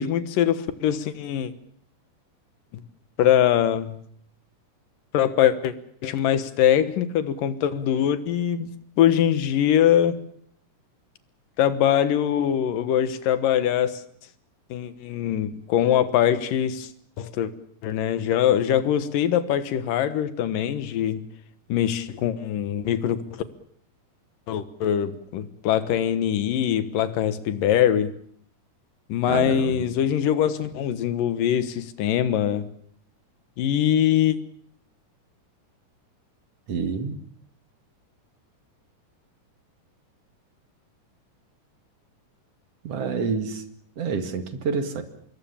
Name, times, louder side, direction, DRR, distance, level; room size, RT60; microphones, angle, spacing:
voice 1, 0.0-1.5 2.7-2.8 3.2-4.0 5.1-5.7 6.0-10.2 11.6-14.0 14.7-16.9 17.2-17.5 17.8-21.2 21.7-23.4 24.5-28.1 29.1-32.7 33.6-34.4, left 10 dB, 85° left, 13 dB, 3.0 m, -22 dB
voice 2, 29.3-29.9 36.7-37.2 42.8-43.6 44.0-45.0, right 5 dB, 50° right, 8 dB, 3.0 m, -28 dB
26.0 x 21.5 x 7.3 m, 0.64 s
omnidirectional pair, 3.8 m